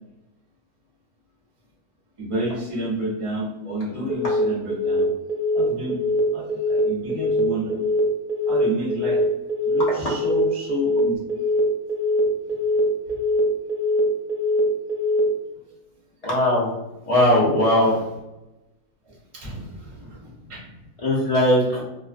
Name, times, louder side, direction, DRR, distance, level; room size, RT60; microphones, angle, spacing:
voice 1, 2.2-5.1 5.5-6.0 6.3-7.8 8.5-9.2 9.6-11.2 17.8-18.0 19.0-20.7, equal, 30° right, -5 dB, 0.6 m, -31 dB
Telephone, 4.1-4.4 4.7-5.0 5.3-5.6 5.9-6.2 6.5-6.8 7.1-7.4 7.7-8.0 8.3-8.6 8.9-9.2 9.5-9.8 10.1-10.4 10.7-11.0 11.3-11.6 11.9-12.2 12.5-12.8 13.1-13.4 13.7-14.0 14.3-14.6 14.9-15.2, left 2 dB, 70° right, 1.0 m, -23 dB
voice 2, 16.2-16.7 17.1-17.9 21.0-21.8, left 1 dB, 75° left, -6 dB, 0.3 m, -19 dB
2.5 x 2.4 x 2.4 m, 0.98 s
omnidirectional pair, 1.6 m